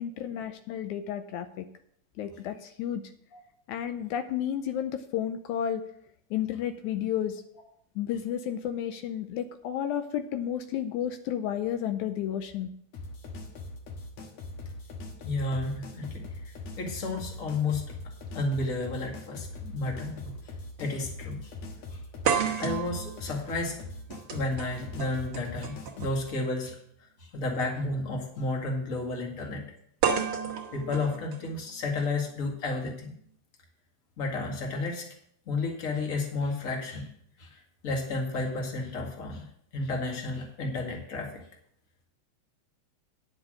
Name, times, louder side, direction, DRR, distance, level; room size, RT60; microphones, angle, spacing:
voice 1, 0.0-1.7 2.2-3.1 3.7-5.8 6.3-7.4 8.0-12.7, left 10 dB, 80° left, 9 dB, 2.0 m, -32 dB
sound 1, 12.9-26.2, left 2 dB, 65° left, 2.3 m, -41 dB
voice 2, 15.2-16.2 16.8-17.8 18.3-20.2 20.8-21.4 22.6-23.8 24.3-26.8 27.3-29.6 30.7-33.1 34.2-35.1 35.5-37.1 37.4-39.5 39.7-41.3, left 2 dB, 30° left, 1 dB, 1.9 m, -32 dB
sound 2, 20.3-20.4 20.8-20.9 22.3-26.3 27.5-27.6 30.0-32.0, right 7 dB, 55° right, 1.9 m, -32 dB
10.0 x 6.2 x 6.4 m, 0.68 s
omnidirectional pair, 3.4 m